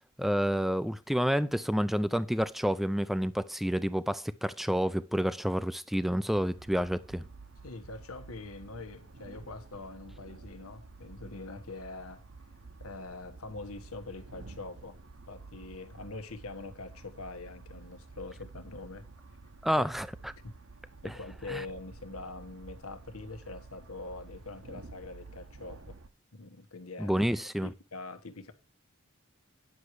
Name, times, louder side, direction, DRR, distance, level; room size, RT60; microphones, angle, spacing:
voice 1, 0.2-7.2 19.6-20.3 21.0-21.1 21.5-21.6 27.0-27.7, equal, ahead, 0.4 m, -29 dB
sound 1, 6.3-26.1, right 3 dB, 70° right, 1.1 m, -51 dB
voice 2, 7.6-12.3 12.8-15.0 15.3-19.1 19.8-19.9 20.4-20.6 21.0-26.0 26.3-27.2 27.6-28.5, left 3 dB, 90° left, 1.3 m, -44 dB
10.0 x 6.7 x 4.6 m
head